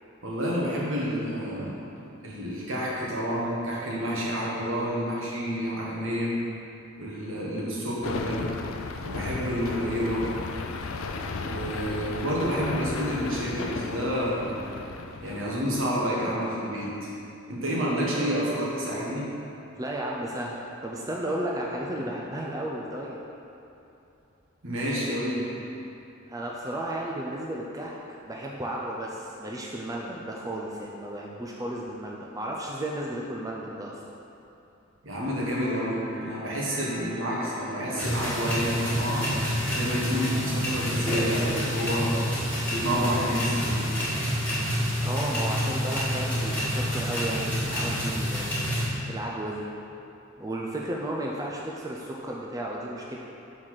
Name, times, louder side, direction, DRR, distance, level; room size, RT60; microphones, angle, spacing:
voice 1, 0.2-1.8 2.2-6.3 7.0-8.5 9.0-10.3 11.4-14.6 15.2-17.1 17.5-19.3 24.6-25.5 35.0-39.3 39.7-42.2 42.7-43.9, equal, 75° right, -5 dB, 1.3 m, -29 dB
sound 1, 8.0-15.6, left 4 dB, 80° left, 0.4 m, -35 dB
voice 2, 19.8-23.2 26.3-28.0 28.3-34.0 45.0-48.6 49.1-49.7 50.4-53.2, right 1 dB, 15° right, -2 dB, 0.4 m, -33 dB
sound 2, 35.4-42.0, equal, 45° right, 1.5 m, -42 dB
sound 3, 38.0-48.9, equal, 10° left, 1.3 m, -28 dB
5.8 x 4.0 x 4.7 m, 2.8 s
head